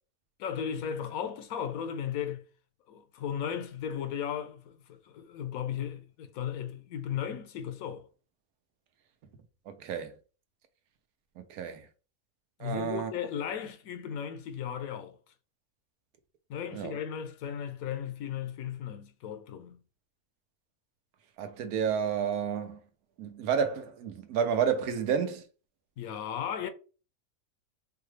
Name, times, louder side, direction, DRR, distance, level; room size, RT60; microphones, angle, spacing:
voice 1, 0.4-2.5 2.9-8.1 12.6-15.2 16.5-19.8 26.0-26.7, left 8 dB, 75° left, 1.1 m, -36 dB
voice 2, 9.7-10.1 11.5-11.9 12.6-13.1 16.7-17.0 21.4-22.8 23.2-25.4, right 7 dB, 90° right, 1.1 m, -30 dB
4.6 x 2.3 x 3.1 m
omnidirectional pair, 1.5 m